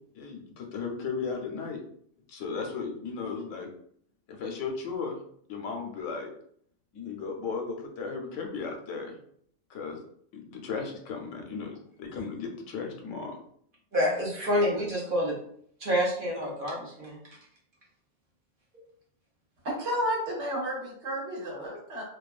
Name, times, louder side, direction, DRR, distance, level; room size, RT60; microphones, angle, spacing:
voice 1, 0.2-1.8 2.3-3.7 4.3-5.2 5.5-6.3 6.9-9.2 9.7-10.0 10.3-13.4, left 5 dB, 80° left, 2 dB, 0.9 m, -35 dB
voice 2, 13.9-15.4 15.8-17.2, equal, 50° right, -3 dB, 0.8 m, -27 dB
voice 3, 19.6-22.0, equal, 65° right, -3 dB, 1.2 m, -31 dB
2.6 x 2.3 x 2.3 m, 0.65 s
omnidirectional pair, 1.3 m